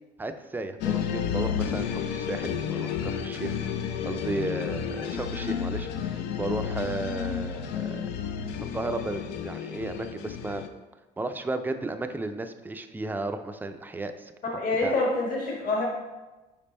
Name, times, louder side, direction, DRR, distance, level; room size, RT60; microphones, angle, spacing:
voice 1, 0.2-3.6 4.0-8.1 8.7-10.6 11.2-14.3 14.8-14.9, right 2 dB, 10° right, 8 dB, 0.4 m, -34 dB
sound 1, 0.8-10.7, left 8 dB, 85° left, 0.6 m, -31 dB
voice 2, 14.5-15.9, left 2 dB, 55° left, -2 dB, 1.7 m, -26 dB
5.4 x 5.0 x 4.2 m, 1.1 s
cardioid pair, 110°, 17 cm